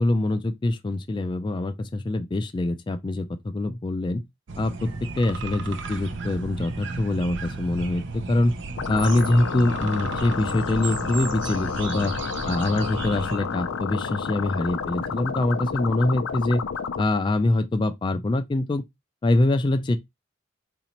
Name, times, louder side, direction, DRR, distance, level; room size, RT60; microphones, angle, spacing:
voice 1, 0.0-4.2 4.6-8.5 8.9-12.1 12.4-16.6 17.0-18.9 19.2-20.0, left 2 dB, 25° left, 0.3 m, -24 dB
sound 1, 4.5-13.4, right 3 dB, 65° right, 0.5 m, -34 dB
sound 2, 8.8-17.0, left 6 dB, 85° left, 0.5 m, -31 dB
4.1 x 2.6 x 2.9 m
head